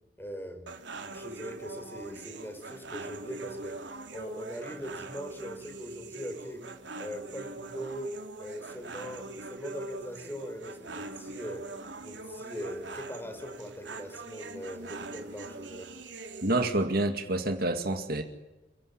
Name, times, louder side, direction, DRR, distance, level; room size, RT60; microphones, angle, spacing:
voice 1, 0.2-0.8 1.1-3.8 4.1-6.6 7.0-8.1 8.4-11.6 12.0-15.9, equal, 10° left, 6 dB, 4.6 m, -41 dB
sound 1, 0.7-16.7, right 3 dB, 70° right, 3.2 m, -43 dB
voice 2, 16.4-18.2, right 2 dB, 50° right, 6 dB, 2.2 m, -28 dB
29.5 x 17.0 x 9.8 m, 1.1 s
head